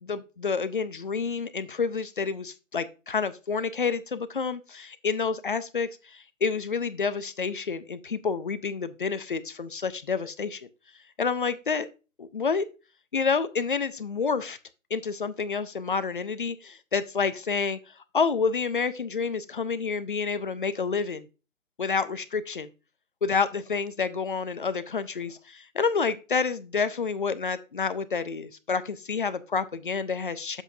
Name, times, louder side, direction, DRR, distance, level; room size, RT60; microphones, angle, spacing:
voice 1, 0.0-10.6 11.2-11.9 12.2-12.7 13.1-14.6 14.9-17.8 18.1-21.3 21.8-22.7 23.2-30.6, left 5 dB, 40° left, 13 dB, 0.5 m, -29 dB
8.1 x 7.2 x 2.6 m, 0.31 s
hypercardioid pair, 160°, 41 cm